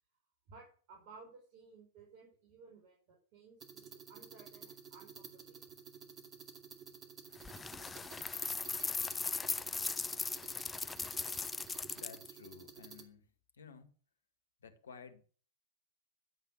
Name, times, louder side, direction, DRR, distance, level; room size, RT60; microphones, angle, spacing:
voice 1, 0.5-5.6, right 4 dB, 50° right, 5.4 m, -58 dB
sound 1, 3.6-13.0, right 6 dB, 25° right, 2.5 m, -52 dB
sound 2, 7.4-12.3, left 4 dB, 15° left, 0.6 m, -38 dB
voice 2, 12.0-13.9 14.6-15.2, left 6 dB, 75° left, 1.9 m, -54 dB
12.0 x 8.4 x 7.2 m
hypercardioid pair, 105°, 0 cm